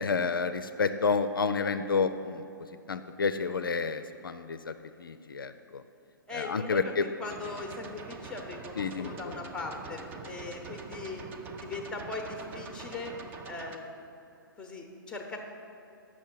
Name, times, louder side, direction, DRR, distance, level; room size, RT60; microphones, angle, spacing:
voice 1, 0.0-2.5 2.9-5.8 6.3-7.1 8.8-9.4, left 5 dB, 70° left, 9 dB, 0.4 m, -30 dB
voice 2, 6.3-11.2 11.6-13.1 13.4-14.0 14.6-15.4, left 3 dB, 5° left, 2 dB, 0.9 m, -39 dB
sound 1, 7.3-13.8, right 4 dB, 15° right, 0.4 m, -44 dB
7.3 x 6.2 x 7.3 m, 2.8 s
figure-of-eight pair, 120°, 12 cm